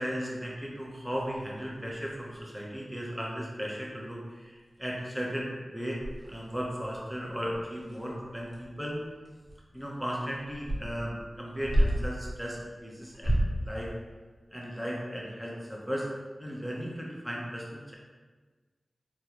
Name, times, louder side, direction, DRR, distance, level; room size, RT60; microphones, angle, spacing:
voice 1, 0.0-6.0 6.3-9.0 9.7-13.9 14.5-16.1 16.4-17.9, equal, 5° right, -3 dB, 0.9 m, -36 dB
sound 1, 1.2-2.7 3.2-3.3 3.5-3.8 4.1-4.2 4.6-5.0 5.4-5.5 6.0-12.2 13.0-13.7, equal, 35° right, 1.3 m, -32 dB
3.7 x 2.3 x 3.0 m, 1.3 s
cardioid pair, 40°, 0 cm